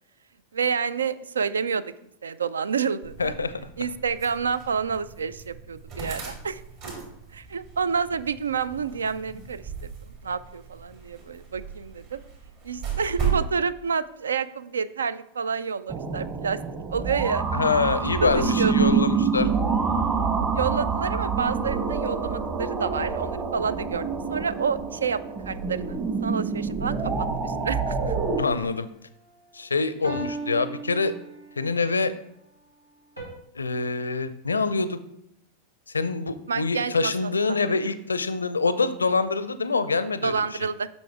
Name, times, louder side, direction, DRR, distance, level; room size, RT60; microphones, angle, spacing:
voice 1, 0.5-1.8 2.2-3.3 3.8-6.6 7.3-9.9 10.2-12.2 12.6-16.6 16.9-17.4 18.2-18.9 20.5-25.2 25.4-26.0 26.2-28.1 36.5-37.1 37.5-37.6 40.2-40.9, right 6 dB, 70° right, 17 dB, 0.3 m, -29 dB
sound 1, 3.0-13.5, right 7 dB, 50° right, 3.1 m, -36 dB
voice 2, 3.2-3.5 17.5-19.5 28.4-28.9 29.5-31.1 31.6-32.1 33.5-35.0 35.9-40.6, left 4 dB, 75° left, 14 dB, 0.5 m, -25 dB
sound 2, 15.9-28.4, right 5 dB, 20° right, 1.3 m, -26 dB
sound 3, 28.0-28.7 30.0-31.6 33.2-33.3, right 2 dB, 90° right, 2.7 m, -37 dB
8.3 x 6.2 x 3.4 m, 0.77 s
figure-of-eight pair, 90°, 0 cm